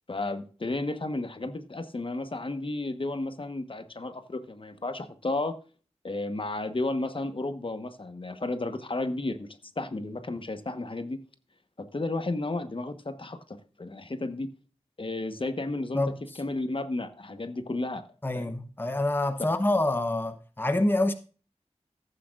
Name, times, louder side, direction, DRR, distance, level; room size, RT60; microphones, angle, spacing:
voice 1, 0.1-5.6 6.0-11.2 11.8-14.5 15.0-16.0 16.4-18.0 18.3-18.5, left 2 dB, 50° left, 1.2 m, -33 dB
voice 2, 18.2-21.1, left 2 dB, 20° left, 0.9 m, -26 dB
14.5 x 8.7 x 2.5 m
wide cardioid pair, 50°, 12 cm